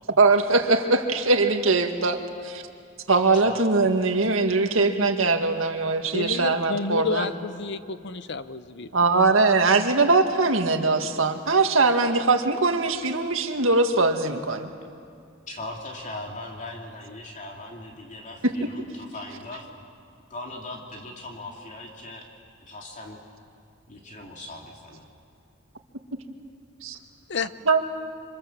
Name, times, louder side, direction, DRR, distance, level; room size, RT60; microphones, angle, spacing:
voice 1, 0.2-2.6 3.1-7.3 8.9-14.7 18.4-18.7 26.8-27.0 27.7-27.8, right 3 dB, 90° right, 5 dB, 1.9 m, -21 dB
voice 2, 6.1-9.1 27.3-27.5, left 4 dB, 60° left, 12 dB, 0.9 m, -30 dB
voice 3, 15.5-19.7 20.3-22.3 22.7-23.2 23.9-25.0, left 2 dB, 40° left, -1 dB, 2.8 m, -39 dB
27.0 x 26.0 x 7.4 m, 2.4 s
head